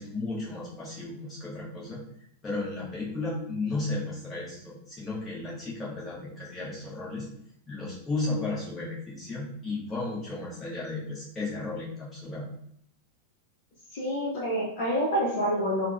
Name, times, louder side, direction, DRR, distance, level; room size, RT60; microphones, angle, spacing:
voice 1, 0.0-2.0 2.4-7.3 7.7-12.5, left 2 dB, 20° left, -6 dB, 1.1 m, -34 dB
voice 2, 13.9-15.9, equal, 50° left, -4 dB, 0.6 m, -27 dB
3.6 x 2.0 x 2.4 m, 0.69 s
figure-of-eight pair, 90°, 0 cm